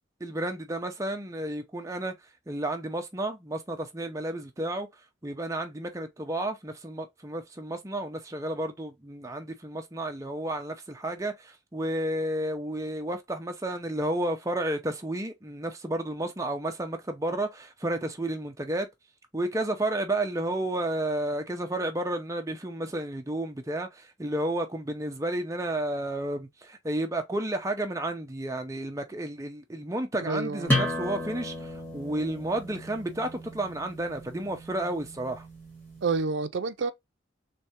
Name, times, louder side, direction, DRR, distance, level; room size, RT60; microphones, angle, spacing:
voice 1, 0.2-2.1 2.5-4.9 5.2-18.9 19.3-35.5, right 1 dB, 15° right, 0.6 m, -32 dB
voice 2, 30.2-30.7 36.0-36.9, right 4 dB, 65° right, 0.5 m, -28 dB
sound 1, 30.7-36.1, left 1 dB, 10° left, 1.3 m, -33 dB
3.3 x 3.3 x 2.8 m
head